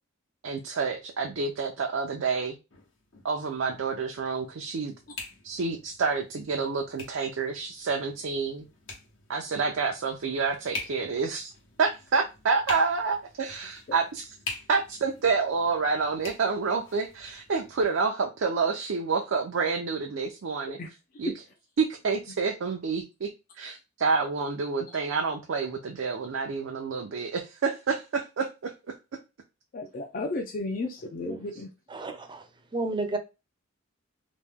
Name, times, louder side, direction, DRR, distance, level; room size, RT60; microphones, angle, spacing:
voice 1, 0.4-2.6 3.2-4.9 5.4-8.6 9.3-11.5 11.8-14.3 14.7-20.8 21.2-21.3 21.8-23.3 23.6-28.5, right 4 dB, 85° right, 0.5 m, -28 dB
sound 1, 2.7-17.9, left 3 dB, 75° left, 1.1 m, -45 dB
voice 2, 29.7-31.7, left 2 dB, 45° left, 0.4 m, -33 dB
voice 3, 31.9-32.5 32.7-33.2, right 2 dB, 25° right, 0.5 m, -31 dB
3.0 x 2.1 x 3.5 m
head